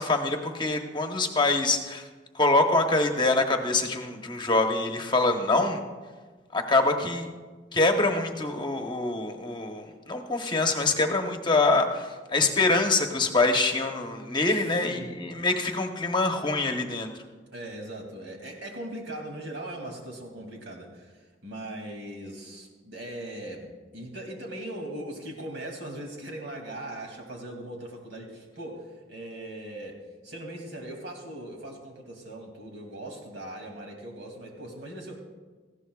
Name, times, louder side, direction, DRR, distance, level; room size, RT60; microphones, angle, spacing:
voice 1, 0.0-2.0 2.3-5.8 6.5-7.3 7.7-17.1, left 2 dB, 25° left, 4 dB, 0.9 m, -25 dB
voice 2, 14.5-15.1 17.5-21.1 21.4-30.0 30.2-35.2, right 1 dB, 80° right, 2 dB, 2.5 m, -39 dB
18.5 x 15.0 x 2.4 m, 1.4 s
head